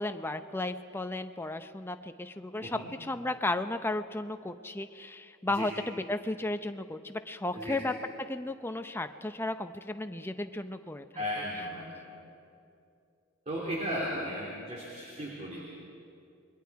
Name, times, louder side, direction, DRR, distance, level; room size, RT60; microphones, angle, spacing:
voice 1, 0.0-7.9 8.3-11.2, left 2 dB, 10° left, 8 dB, 0.6 m, -34 dB
voice 2, 11.1-12.2 13.5-15.6, equal, 30° right, -4 dB, 3.1 m, -36 dB
28.5 x 22.0 x 4.7 m, 2.6 s
head